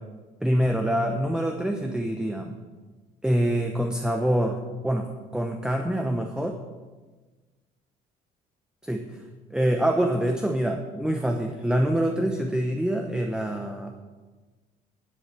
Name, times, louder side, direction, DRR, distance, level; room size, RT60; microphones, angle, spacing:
voice 1, 0.4-2.6 3.2-4.6 4.8-5.1 5.3-6.6 8.8-9.0 9.5-14.0, right 1 dB, 5° right, 3 dB, 0.9 m, -25 dB
11.0 x 7.1 x 6.8 m, 1.3 s
cardioid pair, 110°, 17 cm